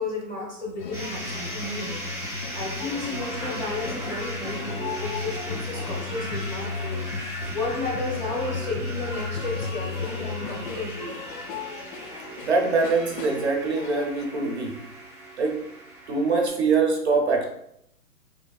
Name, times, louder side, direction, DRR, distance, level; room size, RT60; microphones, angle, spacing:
voice 1, 0.0-1.9 2.5-7.1 7.5-11.2, left 2 dB, 30° left, -3 dB, 0.5 m, -33 dB
sound 1, 0.8-14.2, left 5 dB, 85° left, 0.5 m, -35 dB
sound 2, 0.9-16.5, right 1 dB, 10° right, 0.7 m, -38 dB
voice 2, 12.4-14.8 15.4-15.6 16.1-17.4, right 4 dB, 45° right, 1 dB, 0.5 m, -23 dB
3.1 x 2.4 x 2.2 m, 0.76 s
hypercardioid pair, 150°, 47 cm